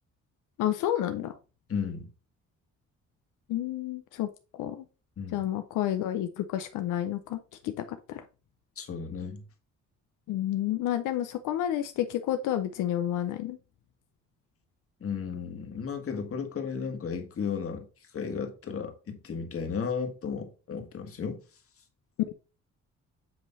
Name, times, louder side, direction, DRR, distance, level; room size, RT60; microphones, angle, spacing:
voice 1, 0.6-1.4 3.5-4.3 4.6-4.8 5.3-7.4 7.6-8.2 10.3-13.6 22.3-22.4, left 12 dB, 90° left, 0.6 m, -30 dB
voice 2, 1.7-2.1 5.2-5.5 8.8-9.4 15.0-17.9 18.1-21.4, left 6 dB, 50° left, 1.7 m, -34 dB
7.9 x 3.1 x 5.4 m
cardioid pair, 90°, 30 cm